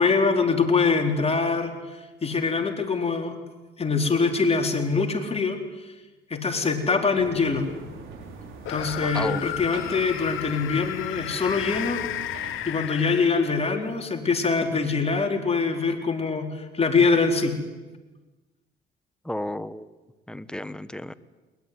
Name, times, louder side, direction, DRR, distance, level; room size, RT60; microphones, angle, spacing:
voice 1, 0.0-1.7 2.2-3.4 3.8-5.6 6.3-7.7 8.7-12.0 12.7-17.6, left 4 dB, 30° left, 3 dB, 4.3 m, -23 dB
sound 1, 7.1-12.6, right 4 dB, 80° right, 5.1 m, -42 dB
sound 2, 8.6-13.8, left 14 dB, 85° left, 0.8 m, -34 dB
voice 2, 9.0-9.4 19.2-19.9 20.3-21.1, left 1 dB, 5° left, 13 dB, 1.2 m, -33 dB
22.0 x 21.5 x 9.8 m, 1.2 s
cardioid pair, 90°, 20 cm